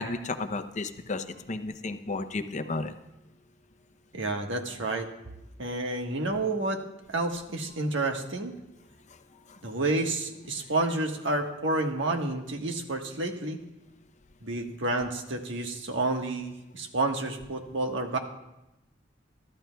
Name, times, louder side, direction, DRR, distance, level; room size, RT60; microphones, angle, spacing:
voice 1, 0.0-2.9, left 3 dB, 40° left, 9 dB, 0.6 m, -33 dB
voice 2, 4.1-5.1 5.6-6.8 7.1-8.5 9.6-13.6 14.4-18.2, right 2 dB, 85° right, 3 dB, 1.4 m, -30 dB
22.5 x 13.5 x 2.3 m, 0.93 s
head